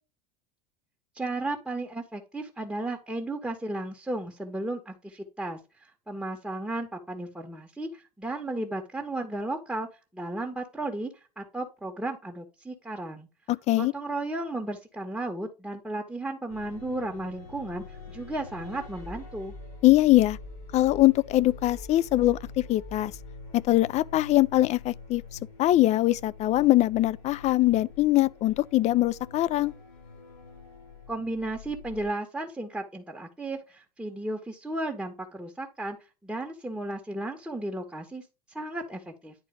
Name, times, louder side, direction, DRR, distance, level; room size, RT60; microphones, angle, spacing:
voice 1, 1.1-9.9 10.1-11.1 11.4-13.3 13.7-19.5 31.1-36.0 36.2-39.3, right 2 dB, 5° right, 1.6 m, -34 dB
voice 2, 13.5-13.9 19.8-20.4 20.7-22.4 22.7-23.1 23.5-25.2 25.6-29.7, left 16 dB, 35° left, 0.5 m, -22 dB
sound 1, 16.5-32.1, left 3 dB, 60° left, 4.4 m, -45 dB
10.5 x 4.3 x 3.7 m
figure-of-eight pair, 80°, 20 cm